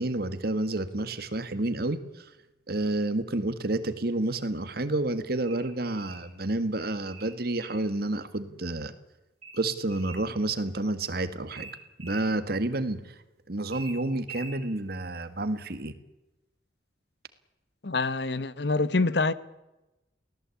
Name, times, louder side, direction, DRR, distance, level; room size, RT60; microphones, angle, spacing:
voice 1, 0.0-2.3 2.7-8.9 9.5-11.7 12.0-13.0 13.5-16.0, right 2 dB, 55° right, 1.8 m, -29 dB
sound 1, 5.4-6.3 7.1-7.9 9.4-10.3 11.5-12.3 13.7-14.6, right 4 dB, 35° right, 7.4 m, -45 dB
voice 2, 17.8-19.3, left 3 dB, 65° left, 1.1 m, -26 dB
23.5 x 17.5 x 8.5 m
head